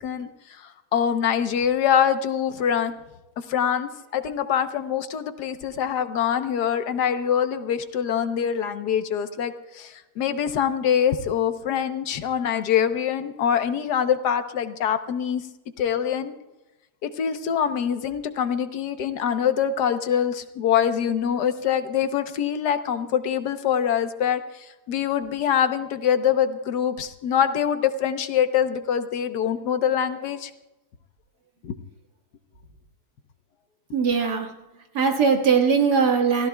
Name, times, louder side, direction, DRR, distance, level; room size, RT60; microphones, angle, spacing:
voice 1, 0.6-2.9 3.5-15.4 15.8-16.3 17.0-30.5 31.6-31.8, left 8 dB, 90° left, 9 dB, 1.5 m, -24 dB
voice 2, 33.9-34.5 34.9-36.5, right 5 dB, 80° right, 2 dB, 2.2 m, -20 dB
29.5 x 16.0 x 2.3 m, 0.99 s
omnidirectional pair, 1.7 m